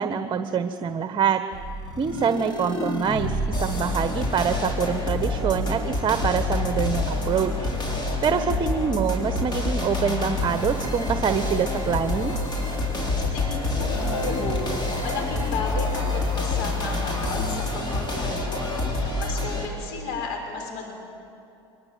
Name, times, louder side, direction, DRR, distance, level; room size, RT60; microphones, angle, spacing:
voice 1, 0.0-1.4 2.0-7.7 8.2-12.3, right 7 dB, 35° right, 9 dB, 1.3 m, -25 dB
sound 1, 1.5-19.6, left 2 dB, 30° left, 6.3 m, -27 dB
voice 2, 8.1-8.6 13.2-20.9, left 4 dB, 75° left, 2 dB, 6.0 m, -34 dB
24.5 x 24.0 x 9.3 m, 2.7 s
hypercardioid pair, 90°, 14 cm